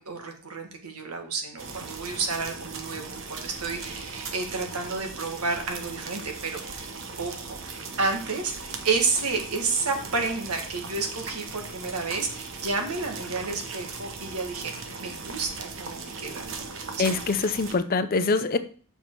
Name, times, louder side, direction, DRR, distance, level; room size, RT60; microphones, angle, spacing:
voice 1, 0.0-6.6 7.2-14.7 15.0-16.5 16.8-17.2, right 4 dB, 90° right, 4 dB, 1.6 m, -30 dB
sound 1, 1.6-17.8, right 4 dB, 60° right, 1.1 m, -38 dB
voice 2, 17.0-18.6, left 4 dB, 40° left, 11 dB, 0.6 m, -24 dB
7.0 x 5.5 x 4.6 m, 0.42 s
head